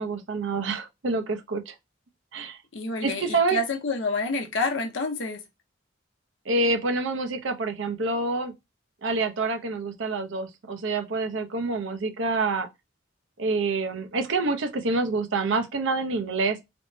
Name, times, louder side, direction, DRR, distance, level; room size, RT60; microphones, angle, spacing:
voice 1, 0.0-1.7 2.3-2.6 3.0-3.6 6.5-8.5 9.0-12.7 13.4-16.6, right 3 dB, 80° right, 0.5 m, -27 dB
voice 2, 2.7-5.4, left 2 dB, 75° left, 0.7 m, -28 dB
3.4 x 2.0 x 2.5 m
head